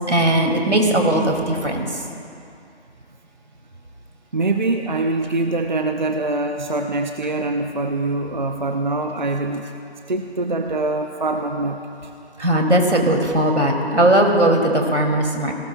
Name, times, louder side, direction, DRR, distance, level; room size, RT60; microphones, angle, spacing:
voice 1, 0.1-2.0 12.4-15.5, right 1 dB, 85° right, 2 dB, 2.4 m, -18 dB
voice 2, 4.3-9.7 10.1-12.1, right 2 dB, 45° right, 5 dB, 0.6 m, -24 dB
18.5 x 18.0 x 2.2 m, 2.5 s
figure-of-eight pair, 165°, 33 cm